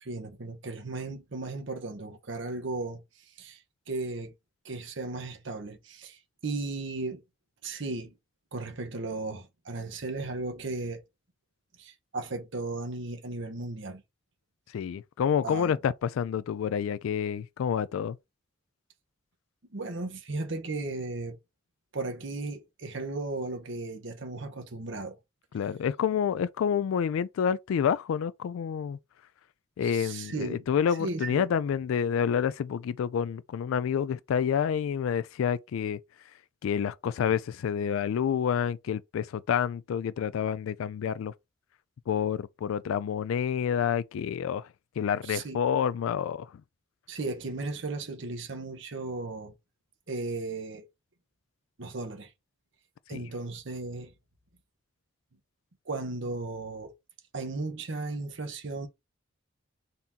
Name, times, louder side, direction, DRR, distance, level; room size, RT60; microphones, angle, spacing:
voice 1, 0.0-3.0 3.4-3.6 3.9-4.3 4.6-7.2 7.6-8.1 8.5-11.0 11.8-14.0 15.4-15.7 19.7-21.4 21.9-25.2 29.8-30.7 31.0-31.5 45.2-45.6 47.1-49.5 50.1-50.9 51.8-52.3 53.1-54.1 55.9-56.9 57.3-58.9, right 3 dB, 65° right, 0.9 m, -35 dB
voice 2, 14.7-18.2 25.5-29.0 29.8-36.0 36.6-41.3 42.1-44.6 45.0-46.5 53.1-53.2, left 8 dB, 80° left, 0.3 m, -28 dB
4.0 x 2.8 x 3.6 m
head